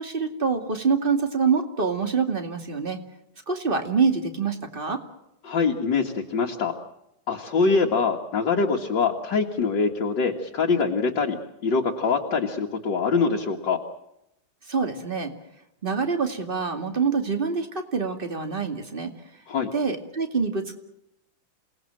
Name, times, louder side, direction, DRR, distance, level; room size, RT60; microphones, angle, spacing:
voice 1, 0.0-3.0 3.5-5.0 14.7-15.3 15.8-19.1 19.7-20.8, right 5 dB, 25° right, 6 dB, 2.4 m, -25 dB
voice 2, 5.4-6.7 7.3-13.8 19.5-19.7, left 4 dB, 60° left, 0 dB, 2.3 m, -24 dB
28.0 x 19.0 x 7.6 m, 0.84 s
omnidirectional pair, 2.2 m